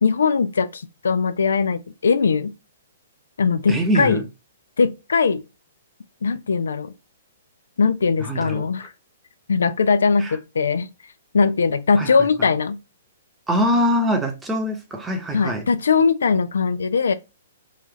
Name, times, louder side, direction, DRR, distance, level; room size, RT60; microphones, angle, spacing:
voice 1, 0.0-2.5 3.4-4.2 4.8-5.4 6.2-6.9 7.8-8.9 9.5-10.9 11.3-12.8 15.3-17.1, left 5 dB, 75° left, 0.3 m, -20 dB
voice 2, 3.7-4.2 8.2-8.7 10.2-10.4 12.0-12.1 12.4-12.5 13.5-15.6, equal, 10° right, 0.9 m, -23 dB
4.1 x 2.4 x 2.9 m
hypercardioid pair, 125°, 0 cm